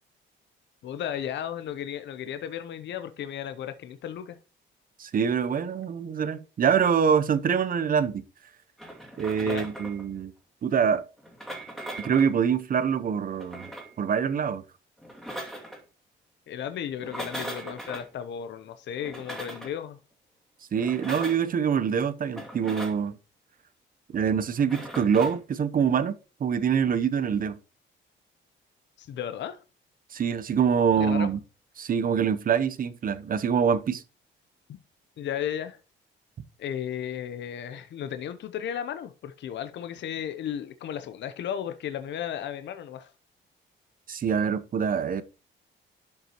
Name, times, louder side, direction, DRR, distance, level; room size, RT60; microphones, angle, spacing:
voice 1, 0.8-4.4 9.4-9.7 16.5-20.0 29.0-29.6 30.9-31.3 34.7-34.8 35.2-35.8 36.6-43.1, left 9 dB, 65° left, 0.7 m, -34 dB
voice 2, 5.0-8.2 9.2-10.3 10.6-11.0 12.0-13.7 14.0-14.6 20.7-23.2 24.1-27.6 30.1-31.4 31.8-34.0 44.1-45.2, right 7 dB, 45° right, 0.7 m, -25 dB
sound 1, 8.8-10.0 11.2-12.3 13.3-13.9 15.0-15.8 16.9-18.1 19.0-19.7 20.7-21.5 22.3-23.0 24.6-25.4, right 1 dB, ahead, 2.4 m, -39 dB
11.5 x 5.5 x 2.9 m
cardioid pair, 90°, 20 cm